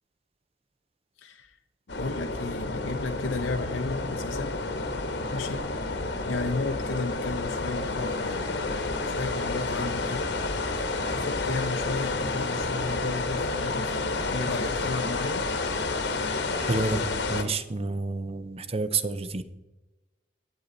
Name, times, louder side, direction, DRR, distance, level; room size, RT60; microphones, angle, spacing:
voice 1, 1.2-1.6 1.9-4.5 5.3-8.7 9.1-10.3 10.8-15.5, left 3 dB, 85° left, 4 dB, 0.8 m, -34 dB
sound 1, 1.9-17.4, left 3 dB, 65° left, 1.3 m, -30 dB
voice 2, 16.5-17.0 17.3-19.4, right 3 dB, 30° right, 11 dB, 0.6 m, -29 dB
12.0 x 8.5 x 4.0 m, 1.0 s
head